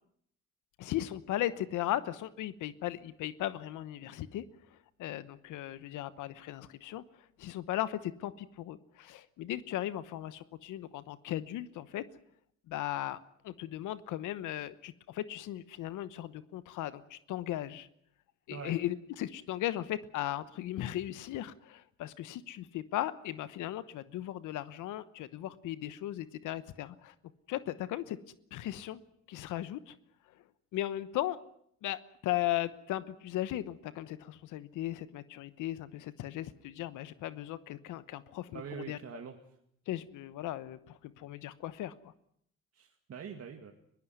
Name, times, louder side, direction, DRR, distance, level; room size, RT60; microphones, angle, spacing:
voice 1, 0.8-4.4 4.7-12.0 12.7-13.2 13.4-17.9 18.5-27.1 27.5-28.2 28.5-29.0 29.3-30.0 30.3-30.4 30.7-31.4 31.8-39.0 39.9-42.1, left 13 dB, 85° left, 15 dB, 1.1 m, -37 dB
voice 2, 38.5-39.4 42.7-43.7, right 7 dB, 55° right, 3 dB, 2.2 m, -44 dB
21.5 x 17.0 x 9.5 m, 0.71 s
cardioid pair, 90°, 30 cm